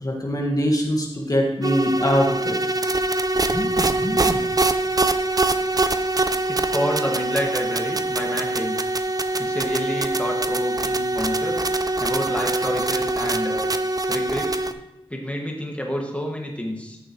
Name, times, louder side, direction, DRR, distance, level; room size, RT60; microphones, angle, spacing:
voice 1, 0.0-2.5, equal, 35° left, -1 dB, 1.7 m, -22 dB
sound 1, 1.6-14.7, right 2 dB, 35° right, 0.6 m, -23 dB
voice 2, 3.5-4.4 6.5-8.8 9.4-11.6 12.0-13.6 14.1-14.6 15.1-17.0, equal, 10° left, 0 dB, 1.8 m, -29 dB
14.0 x 6.6 x 3.1 m, 0.95 s
wide cardioid pair, 75°, 10 cm